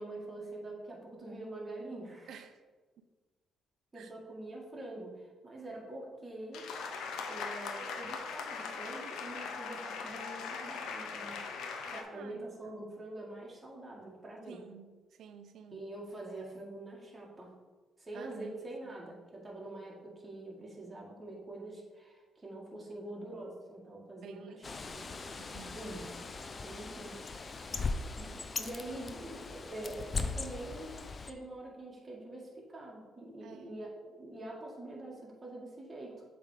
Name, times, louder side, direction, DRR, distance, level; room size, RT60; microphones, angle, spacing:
voice 1, 0.0-2.3 3.9-6.6 7.3-11.4 11.9-14.6 15.7-17.5 18.0-24.8 25.8-26.2 26.6-27.6 28.2-36.2, right 1 dB, 25° right, -3 dB, 2.0 m, -45 dB
voice 2, 2.3-2.6 3.0-3.1 3.9-4.1 12.1-12.8 14.5-15.8 18.1-18.9 24.2-25.9 27.7-28.0 33.4-33.8, right 7 dB, 70° right, 9 dB, 0.5 m, -53 dB
sound 1, 6.5-12.0, left 5 dB, 85° left, 0.7 m, -40 dB
Bird, 24.6-31.3, left 3 dB, 35° left, 0.5 m, -39 dB
7.3 x 3.5 x 5.0 m, 1.3 s
cardioid pair, 90°, 0 cm